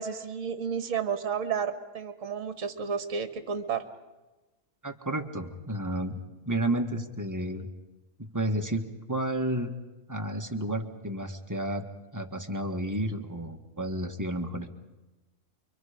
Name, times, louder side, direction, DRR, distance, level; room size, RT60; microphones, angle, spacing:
voice 1, 0.0-3.8, right 6 dB, 55° right, 8 dB, 1.7 m, -32 dB
voice 2, 4.8-7.7 8.2-9.7 10.1-11.9 12.1-14.8, right 1 dB, 10° right, 3 dB, 1.5 m, -31 dB
29.0 x 24.0 x 5.2 m, 1.1 s
omnidirectional pair, 1.6 m